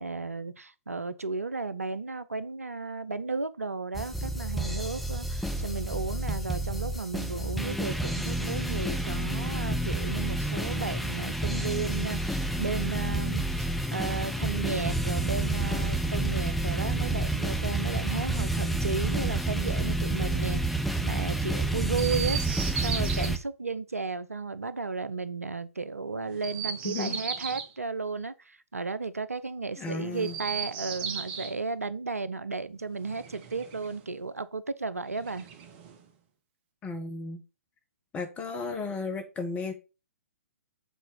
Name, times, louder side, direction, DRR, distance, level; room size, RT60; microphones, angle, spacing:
voice 1, 0.0-35.5, right 4 dB, 80° right, 0.7 m, -34 dB
sound 1, 3.9-23.4, right 2 dB, ahead, 0.9 m, -29 dB
Chirp tweet, 21.9-23.3 26.3-27.7 30.1-31.5 33.0-34.0 35.1-36.0, right 7 dB, 35° right, 1.4 m, -36 dB
voice 2, 26.8-27.2 29.8-30.4 36.8-37.4 38.1-39.7, left 3 dB, 15° left, 1.6 m, -34 dB
8.2 x 4.3 x 5.2 m
figure-of-eight pair, 115°, 8 cm